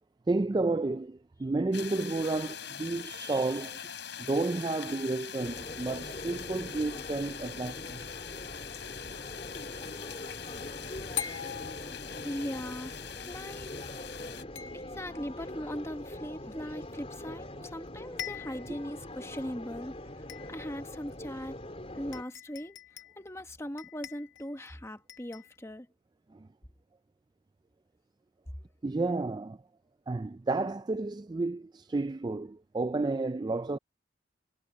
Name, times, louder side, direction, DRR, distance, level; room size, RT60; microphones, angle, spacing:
voice 1, 0.3-3.9 4.2-8.1 28.8-29.6 30.1-33.8, right 3 dB, 20° right, 0.3 m, -31 dB
sound 1, 1.7-14.4, left 8 dB, 60° left, 7.1 m, -43 dB
sound 2, 5.4-22.2, left 1 dB, 30° left, 4.1 m, -43 dB
sound 3, 11.2-12.5 14.5-15.3 17.4-17.5 17.8-17.9 18.2-18.8 19.3-19.4 20.3-20.8 21.7-21.8 22.1-23.3 23.8-24.7 25.1-25.6, left 10 dB, 80° left, 1.9 m, -42 dB
voice 2, 12.2-13.0 13.3-13.7 14.7-20.0 20.5-21.6 21.9-22.8 23.2-25.9, equal, 15° left, 1.3 m, -39 dB
head